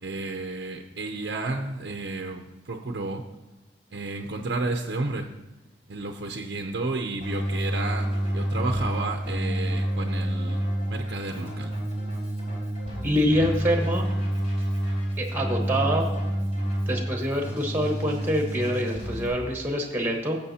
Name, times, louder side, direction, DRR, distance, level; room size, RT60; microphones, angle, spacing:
voice 1, 0.0-3.2 3.9-5.3 5.9-11.7, right 3 dB, 60° right, 3 dB, 0.6 m, -32 dB
Keyboard (musical), 7.2-19.3, right 1 dB, 40° left, 3.3 m, -28 dB
voice 2, 13.0-14.1 15.2-16.1 16.9-20.4, equal, 10° right, 2 dB, 1.2 m, -25 dB
15.5 x 6.9 x 2.8 m, 1.1 s
head